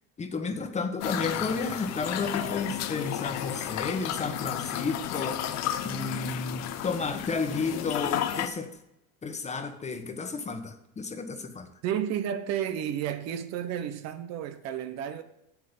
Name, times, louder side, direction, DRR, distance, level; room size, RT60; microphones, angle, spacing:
voice 1, 0.2-8.7 9.2-11.7, left 4 dB, 25° left, 1.3 m, -32 dB
sound 1, 1.0-8.5, left 11 dB, 60° left, 1.0 m, -33 dB
voice 2, 11.8-15.2, right 9 dB, 60° right, 1.0 m, -32 dB
8.2 x 7.7 x 5.3 m
supercardioid pair, 110°, 30 cm